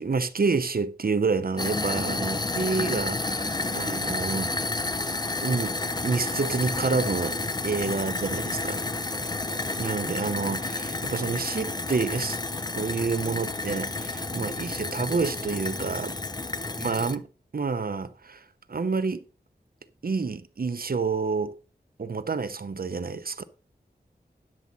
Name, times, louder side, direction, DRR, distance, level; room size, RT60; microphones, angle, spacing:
voice 1, 0.0-4.5 5.4-5.7 6.0-7.4 7.6-8.8 9.8-12.4 12.8-16.2 16.8-17.3 17.5-18.4 18.7-19.2 20.0-21.5 22.0-23.4, right 4 dB, 60° right, 0.8 m, -28 dB
sound 1, 1.6-17.2, left 2 dB, 25° left, 0.6 m, -30 dB
voice 2, 9.2-9.6 16.5-16.8, left 2 dB, 75° left, 1.7 m, -52 dB
10.0 x 7.3 x 4.1 m
wide cardioid pair, 80°, 18 cm